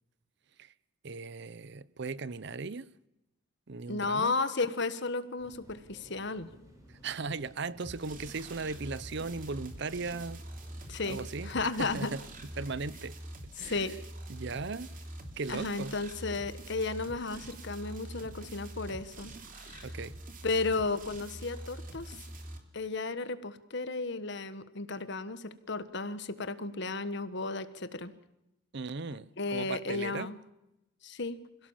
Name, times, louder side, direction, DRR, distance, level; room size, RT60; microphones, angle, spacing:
voice 1, 1.0-2.9 3.7-4.4 6.9-10.4 11.1-11.5 11.8-12.2 12.6-13.2 13.6-13.8 14.3-14.9 15.4-16.0 19.8-20.1 28.7-30.3, right 4 dB, 60° right, 0.7 m, -37 dB
voice 2, 3.9-6.5 10.9-12.1 13.6-14.0 15.5-19.9 20.4-22.3 22.7-28.1 29.4-30.4 31.0-31.4, left 3 dB, 60° left, 1.4 m, -34 dB
sound 1, 5.4-12.8, equal, 15° right, 6.0 m, -56 dB
sound 2, 7.8-22.6, right 1 dB, 40° right, 2.9 m, -45 dB
27.0 x 17.0 x 7.3 m
head